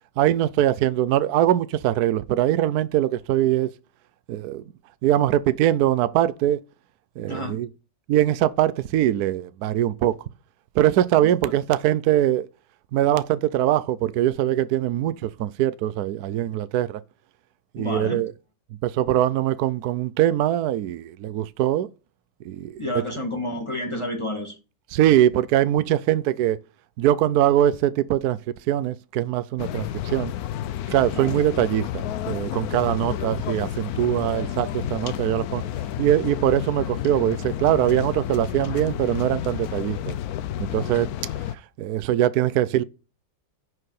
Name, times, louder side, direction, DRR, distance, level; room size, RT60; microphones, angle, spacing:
voice 1, 0.2-3.7 4.3-4.6 5.0-6.6 7.2-7.7 8.1-10.2 10.7-12.5 12.9-17.0 17.7-18.3 18.8-21.9 22.4-22.8 24.9-26.6 27.0-28.4 28.7-30.3 30.9-35.6 36.0-40.1 40.6-41.1 41.8-42.8, right 12 dB, 70° right, 1.0 m, -22 dB
voice 2, 7.3-7.6 11.2-11.3 17.8-18.2 22.8-24.6 31.1-31.3, left 1 dB, 15° left, 1.9 m, -30 dB
sound 1, 29.6-41.5, left 11 dB, 70° left, 1.0 m, -31 dB
10.5 x 4.8 x 6.4 m
omnidirectional pair, 1.9 m